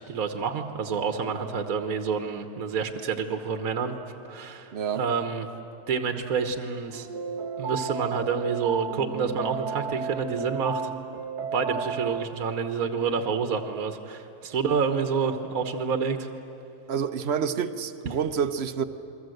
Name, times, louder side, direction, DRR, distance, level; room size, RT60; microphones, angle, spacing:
voice 1, 0.0-3.9 4.3-5.5 5.9-7.1 7.6-10.9 11.5-16.3, right 5 dB, 65° right, 1.6 m, -28 dB
voice 2, 4.7-5.0 16.9-18.8, right 7 dB, 45° right, 1.1 m, -28 dB
sound 1, 6.9-12.3, right 6 dB, 85° right, 1.7 m, -33 dB
29.0 x 22.5 x 7.9 m
omnidirectional pair, 1.6 m